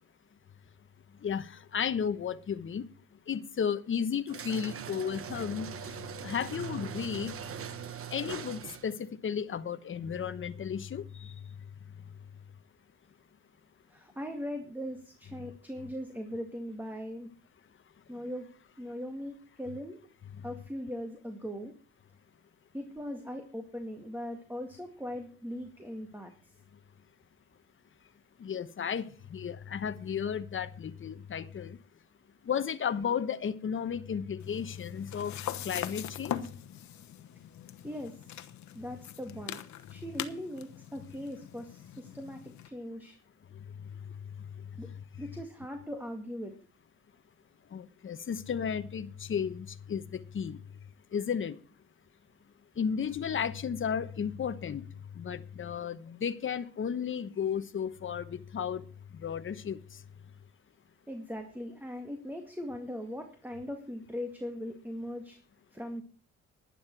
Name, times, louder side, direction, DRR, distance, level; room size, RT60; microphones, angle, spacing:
voice 1, 1.2-2.8 3.3-5.7 6.2-7.3 8.1-11.3 28.4-31.8 32.5-35.4 35.6-36.4 47.7-50.6 51.1-51.6 52.8-54.8 55.2-58.8 59.2-59.8, left 7 dB, 40° left, 1.0 m, -33 dB
sound 1, 4.3-9.0, right 8 dB, 45° right, 1.1 m, -41 dB
voice 2, 13.9-17.3 18.1-18.5 18.8-20.0 20.4-21.7 22.7-26.3 37.8-38.3 38.7-39.6 39.9-43.2 44.8-44.9 45.2-46.5 61.1-65.4 65.7-66.0, equal, 5° right, 2.1 m, -40 dB
sound 2, 34.4-42.7, left 11 dB, 70° left, 1.2 m, -42 dB
11.5 x 11.0 x 4.7 m
cardioid pair, 90°, 30 cm